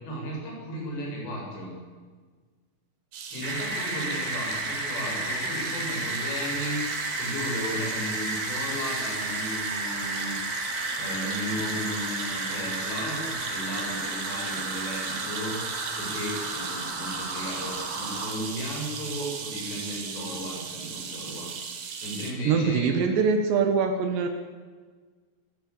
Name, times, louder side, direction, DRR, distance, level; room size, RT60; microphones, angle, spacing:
voice 1, 0.0-1.7 3.3-6.8 7.2-10.3 11.0-15.6 16.0-21.5 22.0-22.9, equal, 80° left, -2 dB, 10.0 m, -35 dB
sound 1, 3.1-22.3, right 6 dB, 65° right, 4.1 m, -37 dB
sound 2, 3.4-18.3, right 1 dB, 20° right, 3.7 m, -33 dB
voice 2, 22.4-24.3, right 5 dB, 80° right, 5 dB, 3.8 m, -23 dB
26.0 x 16.0 x 8.5 m, 1.5 s
omnidirectional pair, 4.9 m